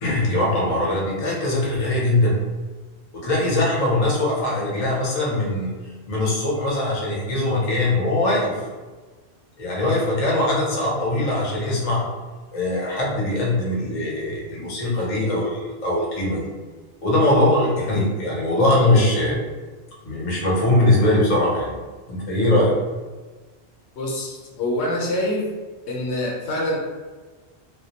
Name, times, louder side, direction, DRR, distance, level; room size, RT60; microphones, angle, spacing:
voice 1, 0.0-2.3 3.1-5.7 6.1-8.6 9.6-12.0 12.5-16.4 17.0-19.4 20.0-21.8 22.1-22.7, left 1 dB, 40° left, -4 dB, 0.6 m, -21 dB
voice 2, 24.0-25.5 25.9-26.8, left 1 dB, 80° left, -2 dB, 0.9 m, -25 dB
2.2 x 2.0 x 2.8 m, 1.3 s
omnidirectional pair, 1.1 m